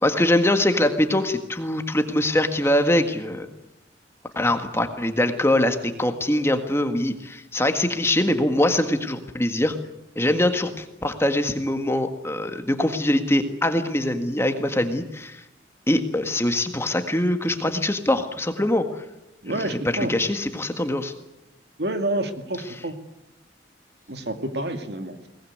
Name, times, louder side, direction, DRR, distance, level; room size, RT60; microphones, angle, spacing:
voice 1, 0.0-3.5 4.3-9.7 10.1-15.4 15.9-19.0 19.6-21.1, left 1 dB, 15° left, 7 dB, 1.7 m, -23 dB
voice 2, 19.4-20.1 21.8-22.9 24.1-25.3, right 1 dB, 60° right, 7 dB, 2.3 m, -28 dB
22.5 x 19.5 x 9.5 m, 0.91 s
head